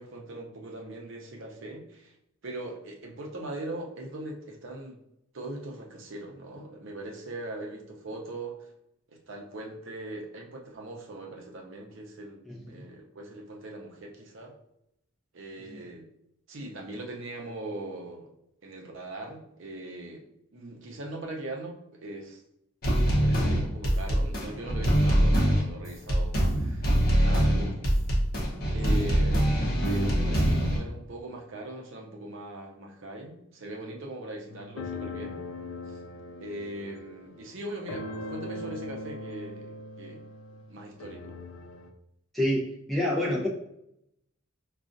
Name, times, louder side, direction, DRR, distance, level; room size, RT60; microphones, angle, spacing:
voice 1, 0.0-2.1 2.4-5.0 5.3-8.7 9.1-12.4 12.7-14.5 15.3-16.1 16.5-18.3 18.6-20.3 20.5-22.4 23.0-26.9 27.2-28.0 28.7-35.4 35.9-36.0 36.4-40.2 40.7-41.4, right 1 dB, 60° right, 0 dB, 0.6 m, -40 dB
sound 1, 22.8-30.8, equal, 45° left, 0.8 m, -24 dB
sound 2, 34.5-41.9, left 2 dB, 65° left, 0.4 m, -40 dB
voice 2, 42.3-43.5, left 1 dB, ahead, -6 dB, 0.6 m, -28 dB
5.0 x 2.4 x 2.5 m, 0.79 s
head